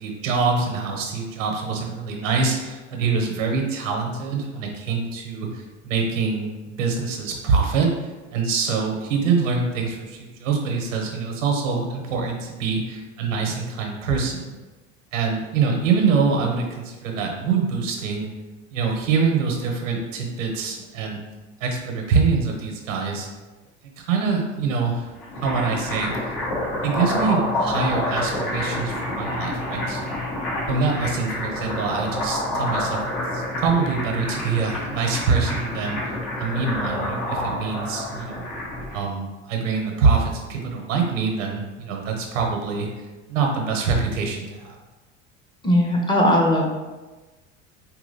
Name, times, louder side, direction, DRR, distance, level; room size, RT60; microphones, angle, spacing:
voice 1, 0.0-6.5 6.8-7.9 8.3-14.5 15.1-18.3 18.7-21.2 21.6-23.3 24.0-25.0 25.4-26.1 26.8-30.1 30.7-36.0 36.4-38.5 38.9-42.9 43.3-44.8, right 5 dB, 85° right, 1 dB, 0.9 m, -24 dB
sound 1, 25.1-39.0, left 1 dB, 60° left, 1.5 m, -28 dB
voice 2, 45.6-46.7, left 1 dB, 10° left, -1 dB, 0.7 m, -18 dB
4.5 x 2.9 x 2.7 m, 1.2 s
hypercardioid pair, 75°, 37 cm